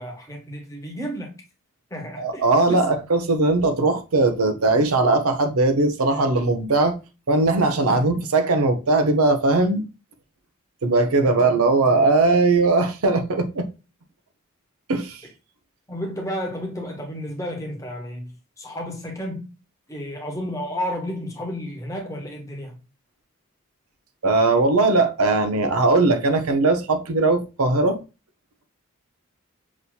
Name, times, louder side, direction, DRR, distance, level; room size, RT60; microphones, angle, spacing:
voice 1, 0.0-1.3 1.9-2.9 7.9-8.2 11.2-12.0 15.9-19.5 19.9-22.7, equal, 15° left, 1.0 m, -32 dB
voice 2, 2.2-7.0 7.3-9.9 10.8-13.7 14.9-15.2 24.2-28.0, right 3 dB, 85° right, 0.7 m, -19 dB
6.1 x 2.7 x 2.2 m
head